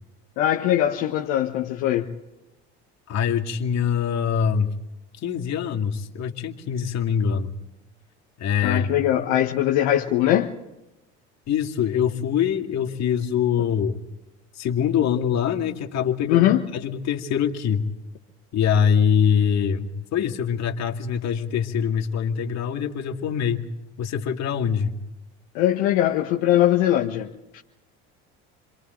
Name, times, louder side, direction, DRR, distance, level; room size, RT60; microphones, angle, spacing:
voice 1, 0.4-2.1 8.6-10.5 16.3-16.7 25.5-27.6, left 12 dB, 75° left, 1.4 m, -21 dB
voice 2, 3.1-4.7 5.2-7.5 8.4-9.0 11.5-14.0 14.6-17.8 18.5-23.7 24.0-24.9, left 7 dB, 55° left, 2.4 m, -24 dB
29.5 x 22.5 x 4.0 m
supercardioid pair, 80°, 33 cm